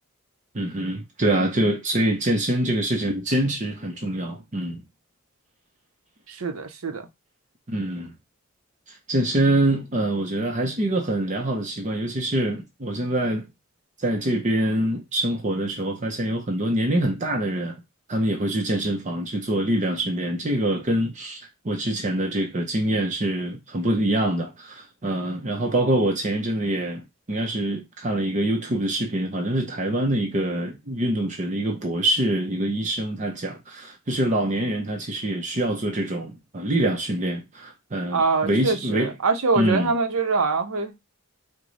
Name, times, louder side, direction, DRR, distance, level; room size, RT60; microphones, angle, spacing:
voice 1, 0.5-4.8 7.7-8.1 8.9-13.4 14.0-17.8 18.1-39.1 39.6-39.9, right 1 dB, 35° right, 0.7 m, -25 dB
voice 2, 6.3-7.1 38.1-41.0, right 4 dB, 85° right, 0.8 m, -24 dB
4.8 x 2.2 x 3.9 m
head